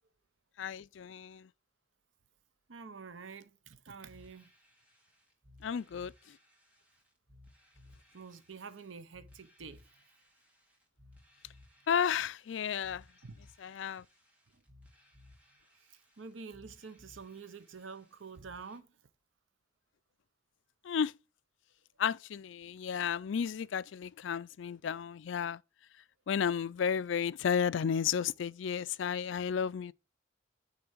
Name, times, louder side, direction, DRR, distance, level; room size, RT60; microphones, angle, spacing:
voice 1, 0.6-1.5 5.6-6.1 11.9-13.0 13.6-14.0 20.8-21.1 22.0-25.6 26.3-29.9, left 7 dB, 75° left, 0.4 m, -33 dB
voice 2, 2.7-4.5 8.1-9.8 13.2-13.4 15.9-18.9, right 5 dB, 90° right, 0.8 m, -48 dB
sound 1, 4.0-18.8, left 1 dB, 10° right, 2.4 m, -61 dB
9.6 x 3.8 x 7.2 m
head